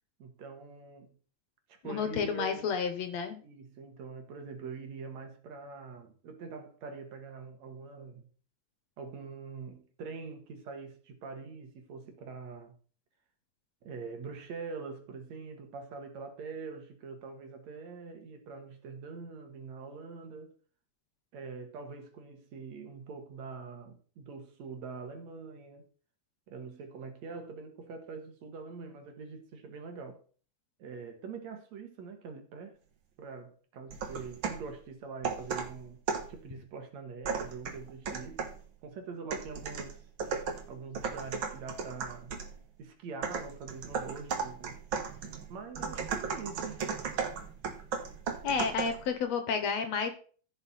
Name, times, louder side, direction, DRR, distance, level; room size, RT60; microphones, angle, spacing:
voice 1, 0.2-1.1 1.7-2.8 3.4-8.3 9.0-12.7 13.8-20.5 21.3-25.8 26.5-30.2 30.8-32.8 33.2-36.0 36.3-38.5 38.8-40.1 40.7-42.4 42.8-44.8 45.5-46.8, right 5 dB, 65° right, 2.8 m, -44 dB
voice 2, 1.8-3.4 48.4-50.1, left 6 dB, 65° left, 2.3 m, -31 dB
sound 1, 33.9-34.7 35.2-36.4 37.2-38.6 39.3-42.6 43.2-49.0, right 6 dB, 50° right, 1.8 m, -36 dB
15.0 x 6.1 x 4.2 m
omnidirectional pair, 3.4 m